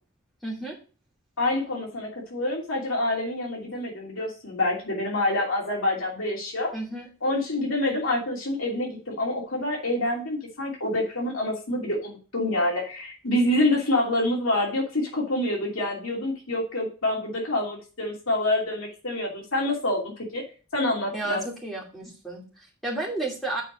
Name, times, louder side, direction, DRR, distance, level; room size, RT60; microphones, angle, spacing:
voice 1, 0.4-0.8 6.7-7.1 21.1-23.6, right 2 dB, ahead, -3 dB, 2.6 m, -32 dB
voice 2, 1.4-6.7 7.2-20.0 20.3-20.4 20.7-21.4, left 1 dB, 80° left, -1 dB, 2.8 m, -27 dB
7.6 x 4.7 x 6.2 m, 0.35 s
head